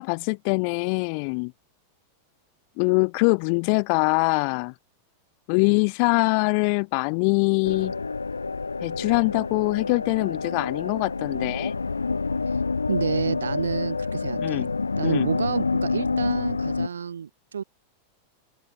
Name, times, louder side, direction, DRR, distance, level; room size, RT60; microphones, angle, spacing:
voice 1, 0.0-1.5 2.8-4.7 5.5-7.9 8.8-11.8 14.4-14.7 15.0-15.3, left 40 dB or more, 45° left, 2.7 m, -23 dB
sound 1, 7.6-16.9, left 4 dB, 80° left, 4.5 m, -28 dB
voice 2, 12.9-14.7 15.0-17.6, right 7 dB, 70° right, 6.4 m, -29 dB
figure-of-eight pair, 90°, 0 cm